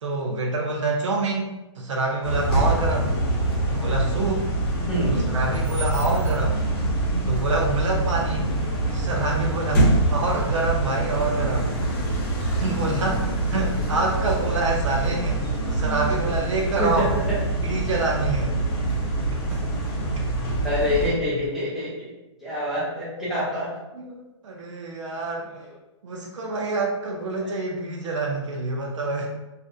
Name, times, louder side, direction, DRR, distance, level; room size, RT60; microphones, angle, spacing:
voice 1, 0.0-3.1 3.7-4.5 5.1-6.6 7.3-8.5 8.9-11.7 12.4-15.4 15.7-17.1 17.6-18.6 19.3-19.6 24.0-25.5 26.0-29.3, right 3 dB, 75° right, 0 dB, 0.5 m, -27 dB
sound 1, 2.2-21.1, right 2 dB, 45° left, 0.8 m, -25 dB
voice 2, 4.9-5.4 16.8-17.4 20.6-22.1 22.4-23.7 25.6-25.7 27.4-27.6, left 1 dB, ahead, -10 dB, 0.4 m, -26 dB
2.5 x 2.1 x 2.6 m, 0.99 s
hypercardioid pair, 165°, 16 cm